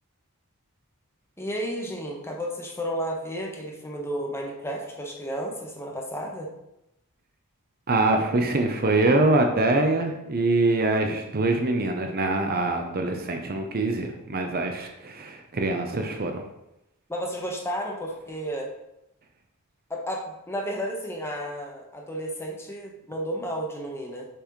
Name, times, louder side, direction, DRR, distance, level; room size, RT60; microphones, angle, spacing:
voice 1, 1.4-6.5 17.1-18.7 19.9-24.3, equal, 10° left, 0 dB, 1.1 m, -32 dB
voice 2, 7.9-16.4, right 2 dB, 45° right, 4 dB, 0.7 m, -24 dB
6.7 x 6.0 x 3.1 m, 0.87 s
head